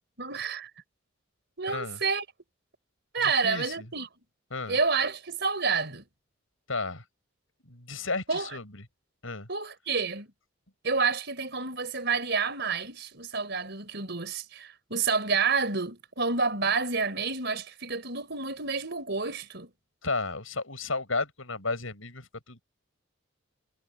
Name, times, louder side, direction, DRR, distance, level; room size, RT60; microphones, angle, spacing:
voice 1, 0.2-0.7 1.6-2.2 3.1-4.1 4.7-6.0 8.3-8.5 9.5-10.3 10.8-19.7, right 4 dB, 55° right, 4.3 m, -29 dB
voice 2, 1.7-2.0 3.2-3.9 4.5-4.8 6.7-7.0 7.6-8.8 9.2-9.5 20.0-22.6, left 3 dB, 80° left, 6.7 m, -33 dB
head